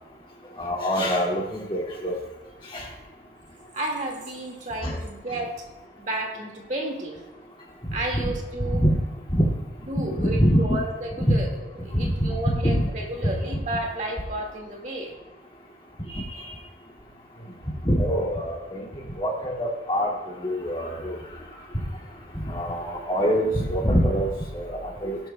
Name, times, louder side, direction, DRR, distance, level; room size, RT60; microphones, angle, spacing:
voice 1, 0.6-2.2 2.7-2.8 4.8-4.9 8.1-8.3 8.8-9.0 9.3-9.5 10.2-10.6 11.3-11.4 11.9-12.1 12.5-12.9 16.3-16.4 17.8-18.8 19.2-20.1 20.4-21.2 22.5-24.3 24.5-25.2, equal, 30° left, -2 dB, 2.2 m, -24 dB
voice 2, 3.7-5.6 6.0-7.2 7.9-8.8 9.8-11.5 11.8-15.1, right 1 dB, 40° right, 0 dB, 1.9 m, -32 dB
18.0 x 11.5 x 2.2 m, 1.1 s
head